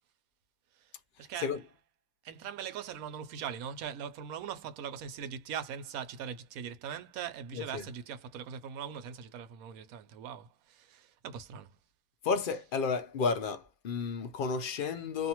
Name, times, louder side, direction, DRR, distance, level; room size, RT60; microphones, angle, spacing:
voice 1, 1.2-1.5 2.2-11.8, right 8 dB, 70° right, 1.0 m, -41 dB
voice 2, 7.5-7.8 12.2-15.3, left 5 dB, 65° left, 0.5 m, -32 dB
2.6 x 2.5 x 2.9 m
omnidirectional pair, 1.6 m